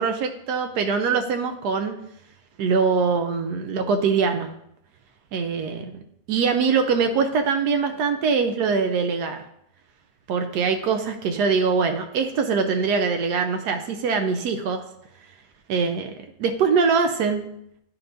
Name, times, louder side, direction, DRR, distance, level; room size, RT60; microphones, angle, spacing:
voice 1, 0.0-1.9 2.6-4.5 5.3-5.9 6.3-9.4 10.3-14.8 15.7-16.1 16.4-17.4, right 5 dB, 85° right, 6 dB, 1.2 m, -23 dB
10.5 x 4.5 x 2.6 m, 0.74 s
omnidirectional pair, 1.7 m